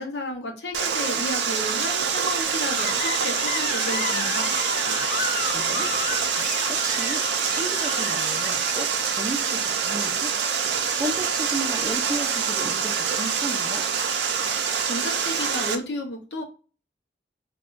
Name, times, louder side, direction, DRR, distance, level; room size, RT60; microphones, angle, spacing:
voice 1, 0.0-4.5 14.8-16.4, left 1 dB, 70° left, 4 dB, 0.7 m, -32 dB
Water, 0.7-15.8, right 6 dB, 75° right, 0.5 m, -25 dB
Screech, 2.7-8.7, left 6 dB, 50° left, 0.3 m, -32 dB
voice 2, 5.5-5.9 6.6-10.3 10.9-13.8, right 1 dB, 20° right, 5 dB, 0.4 m, -34 dB
3.4 x 2.2 x 2.4 m, 0.35 s
head